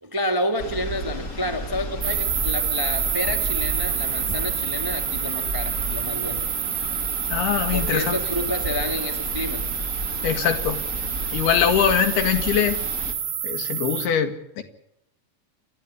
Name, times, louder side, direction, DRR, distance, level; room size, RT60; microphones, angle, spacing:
voice 1, 0.0-6.4 7.7-9.7, left 1 dB, 25° right, 5 dB, 0.4 m, -29 dB
sound 1, 0.6-13.1, equal, 25° left, 2.2 m, -33 dB
sound 2, 2.0-14.1, right 9 dB, 65° right, 1.3 m, -28 dB
voice 2, 7.3-8.2 10.2-10.8 11.3-12.8 13.4-14.6, left 8 dB, 80° left, 8 dB, 3.8 m, -22 dB
29.0 x 12.0 x 10.0 m, 0.80 s
omnidirectional pair, 4.4 m